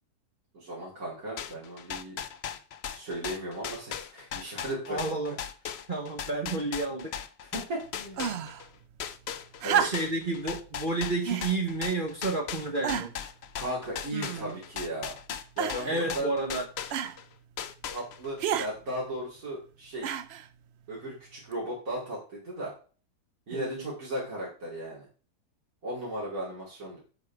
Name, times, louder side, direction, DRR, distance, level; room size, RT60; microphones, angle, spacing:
voice 1, 0.5-2.2 2.9-5.2 7.5-8.3 9.6-10.0 13.6-15.2 15.6-16.3 17.9-20.1 20.9-22.7 23.5-25.0 25.8-27.0, right 1 dB, 60° right, -6 dB, 3.4 m, -36 dB
sound 1, 1.4-8.7 9.0-17.2 17.6-18.4, left 9 dB, 65° left, 0.6 m, -38 dB
voice 2, 4.9-5.4 5.9-7.1 9.8-13.1 15.9-16.7 23.5-23.8, right 2 dB, 35° right, 3 dB, 1.0 m, -30 dB
sound 2, 8.1-8.6 9.6-10.3 11.2-11.5 12.3-12.4 12.8-13.3 14.1-14.7 15.6-16.0 16.9-17.2 18.4-18.7 20.0-20.5 21.5-21.6, right 9 dB, 75° right, 0.5 m, -30 dB
8.2 x 5.4 x 4.6 m, 0.38 s
omnidirectional pair, 1.7 m